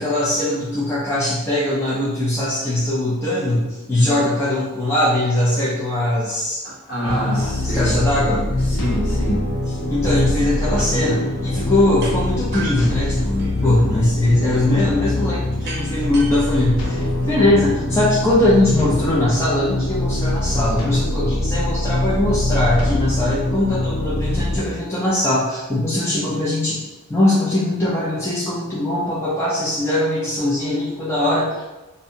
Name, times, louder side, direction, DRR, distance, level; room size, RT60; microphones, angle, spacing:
voice 1, 0.0-6.6 7.0-8.5 9.9-26.8 27.1-31.6, left 1 dB, 10° left, -9 dB, 0.4 m, -21 dB
voice 2, 6.6-8.0 8.3-9.4 13.6-14.0 17.4-17.5, equal, 50° left, -5 dB, 0.8 m, -27 dB
sound 1, 7.1-24.6, left 1 dB, 90° left, 0.5 m, -23 dB
sound 2, 12.0-12.2 12.5-13.7 15.7-17.6, right 3 dB, 45° right, 0.6 m, -35 dB
2.5 x 2.1 x 2.7 m, 1.0 s
head